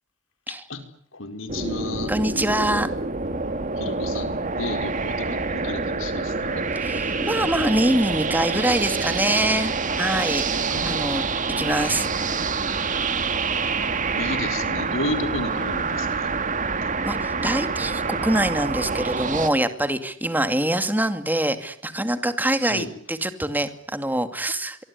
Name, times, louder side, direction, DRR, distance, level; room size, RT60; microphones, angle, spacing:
voice 1, 1.1-2.1 3.8-6.6 10.7-11.1 11.9-12.1 14.1-16.3 22.6-22.9, left 2 dB, 90° left, 8 dB, 4.9 m, -32 dB
sound 1, 1.5-19.5, right 4 dB, 40° right, 2.2 m, -26 dB
voice 2, 2.1-2.9 6.7-11.2 11.6-12.1 17.0-24.8, right 1 dB, 10° right, 9 dB, 2.4 m, -24 dB
25.0 x 24.0 x 9.6 m, 0.62 s
head